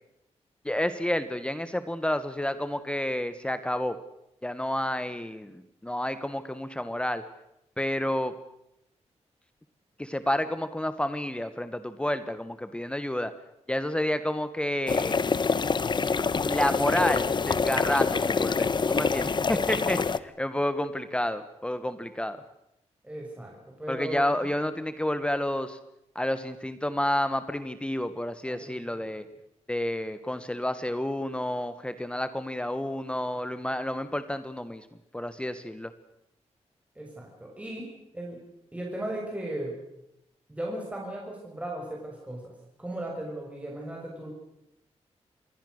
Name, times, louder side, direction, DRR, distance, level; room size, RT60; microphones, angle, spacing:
voice 1, 0.6-4.0 4.4-7.2 7.8-8.3 10.0-13.3 13.7-15.2 16.5-22.4 23.9-25.8 26.1-29.2 29.7-34.9 35.1-35.9, left 1 dB, 10° left, 11 dB, 1.2 m, -30 dB
sound 1, 14.9-20.2, left 5 dB, 40° left, 0.9 m, -26 dB
voice 2, 23.0-24.4 28.5-29.0 37.0-37.9 38.1-38.4 38.7-39.7 40.5-42.5 42.8-44.3, right 1 dB, 10° right, -1 dB, 6.2 m, -37 dB
27.5 x 22.0 x 6.5 m, 0.84 s
wide cardioid pair, 115°, 12 cm